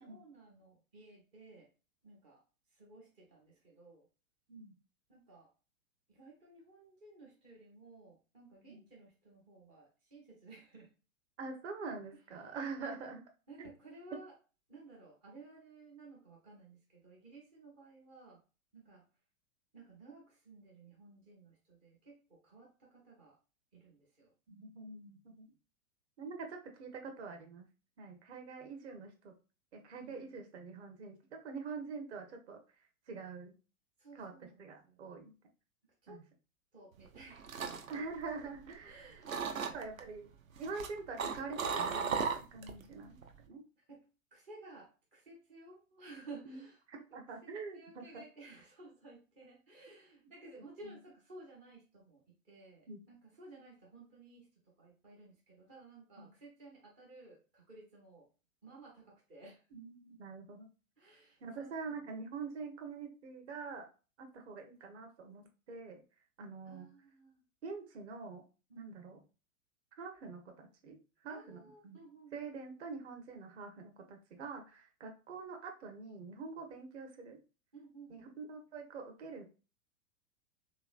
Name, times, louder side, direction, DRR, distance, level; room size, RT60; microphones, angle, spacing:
voice 1, 0.0-1.7 2.0-2.4 2.7-4.1 5.1-5.5 6.1-10.9 12.1-12.6 13.5-14.3 14.7-18.4 18.7-19.0 19.7-23.4 23.7-24.3 30.0-30.5 34.0-35.0 36.0-36.2 36.7-37.8 38.8-40.0 42.8-42.9 43.8-44.1 44.3-58.3 58.6-59.7 61.0-62.0 66.6-67.4 68.7-69.0 71.3-72.5 77.7-78.3, right 3 dB, 10° right, -2 dB, 0.3 m, -56 dB
voice 2, 11.4-13.2 13.6-13.7 24.5-25.5 26.2-27.7 28.0-29.3 29.7-32.6 33.1-33.5 34.1-34.3 34.6-35.3 36.1-36.2 37.9-40.3 40.6-43.2 43.5-43.6 46.4-46.6 46.9-48.2 50.8-50.9 52.9-53.0 56.2-56.3 59.7-60.7 61.4-63.9 64.2-66.0 66.4-66.9 67.6-68.4 68.7-69.2 70.0-72.0 72.3-77.4 78.1-79.4, right 4 dB, 55° right, 4 dB, 1.1 m, -45 dB
sound 1, 37.1-38.9 39.3-40.0 40.6-42.8 43.1-43.5, right 6 dB, 70° right, 0.7 m, -36 dB
3.2 x 3.1 x 2.4 m, 0.33 s
figure-of-eight pair, 100°, 41 cm